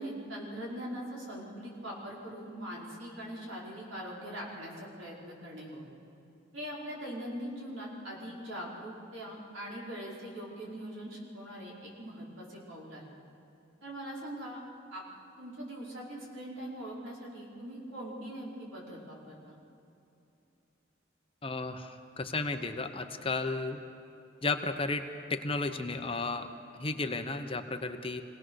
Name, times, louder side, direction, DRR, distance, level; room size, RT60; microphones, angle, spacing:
voice 1, 0.0-5.9 6.5-13.2 13.8-14.6 14.9-15.0 15.4-19.6, equal, 85° right, -4 dB, 5.2 m, -42 dB
voice 2, 21.4-23.8 24.4-25.0 25.3-26.5 26.8-28.2, left 3 dB, 30° left, 7 dB, 0.9 m, -33 dB
26.0 x 18.5 x 6.4 m, 2.7 s
head